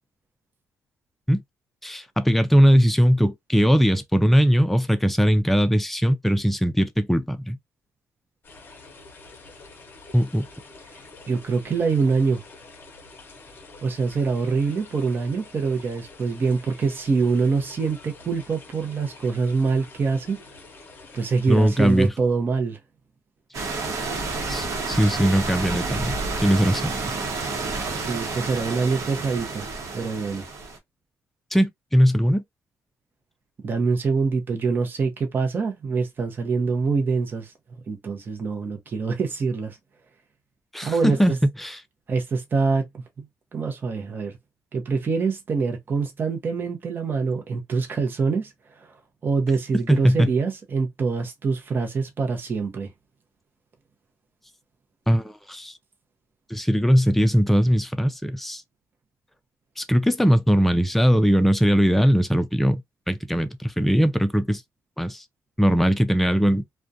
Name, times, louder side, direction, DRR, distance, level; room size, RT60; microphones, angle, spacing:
voice 1, 1.8-7.6 10.1-10.5 21.5-22.1 24.5-26.9 31.5-32.4 40.7-41.3 41.6-41.8 49.9-50.3 55.1-55.7 56.5-58.6 59.8-62.8 63.1-64.6 65.0-65.2 65.6-66.6, equal, 5° left, 0.4 m, -20 dB
sound 1, 8.4-22.1, left 3 dB, 35° left, 0.7 m, -47 dB
voice 2, 11.3-12.4 13.8-20.4 21.1-22.8 27.9-29.7 29.9-30.4 33.6-37.5 37.9-39.8 40.8-41.4 42.1-43.2 43.5-44.3 44.7-48.5 48.8-48.9 49.2-52.9, right 4 dB, 35° right, 0.7 m, -25 dB
sound 2, 23.5-30.8, right 3 dB, 65° right, 0.9 m, -30 dB
2.4 x 2.2 x 2.6 m
cardioid pair, 140°, 6 cm